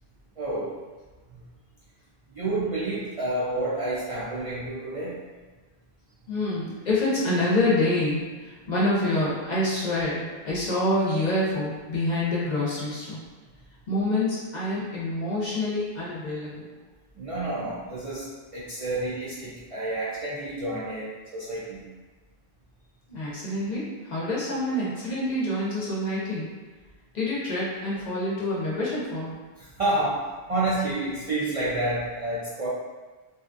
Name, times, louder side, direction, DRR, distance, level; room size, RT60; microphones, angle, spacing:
voice 1, 0.4-0.7 1.3-1.4 2.3-5.2 17.2-18.3 18.5-21.8 29.6-32.7, right 2 dB, 45° right, -9 dB, 0.5 m, -29 dB
voice 2, 6.3-13.2 13.9-16.7 23.1-26.5 27.1-29.3, left 1 dB, 50° left, -6 dB, 0.6 m, -27 dB
2.7 x 2.3 x 2.5 m, 1.3 s
omnidirectional pair, 1.0 m